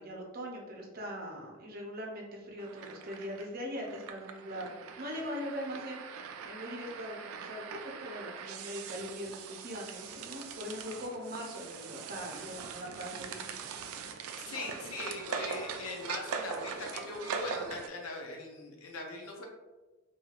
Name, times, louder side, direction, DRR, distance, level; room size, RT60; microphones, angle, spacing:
voice 1, 0.0-13.6, equal, 45° right, 0 dB, 0.6 m, -41 dB
sound 1, 2.6-17.9, right 6 dB, 85° right, 0.3 m, -42 dB
voice 2, 14.4-19.5, left 2 dB, 80° left, 1 dB, 0.6 m, -41 dB
3.1 x 2.7 x 2.4 m, 1.2 s
head